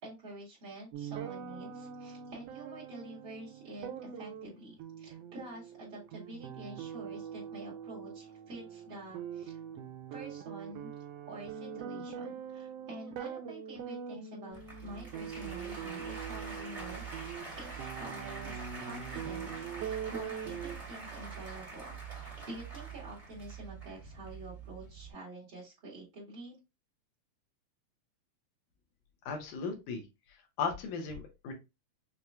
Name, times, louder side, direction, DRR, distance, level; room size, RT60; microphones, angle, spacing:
voice 1, 0.0-9.6 10.1-10.9 11.3-26.6, right 1 dB, 45° right, -5 dB, 2.5 m, -48 dB
sound 1, 0.9-20.7, right 8 dB, 90° right, 1.4 m, -43 dB
Applause, 14.5-25.1, right 4 dB, 15° right, 1.8 m, -44 dB
voice 2, 29.3-30.0 30.3-31.5, left 5 dB, 85° left, 3 dB, 2.6 m, -36 dB
6.4 x 2.9 x 2.2 m, 0.25 s
omnidirectional pair, 3.5 m